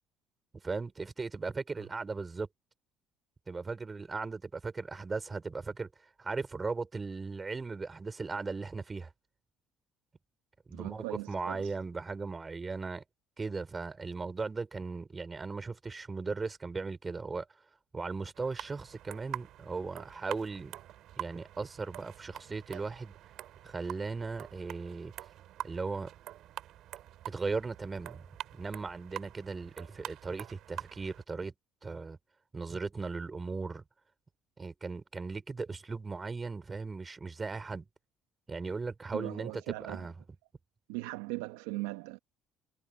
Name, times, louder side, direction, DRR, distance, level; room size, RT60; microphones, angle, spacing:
voice 1, 0.6-2.5 3.5-5.9 6.2-9.1 10.7-13.0 13.4-17.5 17.9-20.8 21.2-23.1 23.6-25.1 25.6-26.1 27.3-28.3 28.5-31.5 31.8-32.2 32.5-33.8 34.6-37.9 38.5-39.6 39.9-40.1, right 4 dB, 25° right, 5.3 m, -37 dB
voice 2, 10.7-11.7 39.1-40.1 40.9-42.2, right 22 dB, 85° right, 1.5 m, -39 dB
sound 1, 18.3-31.2, right 13 dB, 65° right, 3.4 m, -46 dB
hypercardioid pair, 70°, 0 cm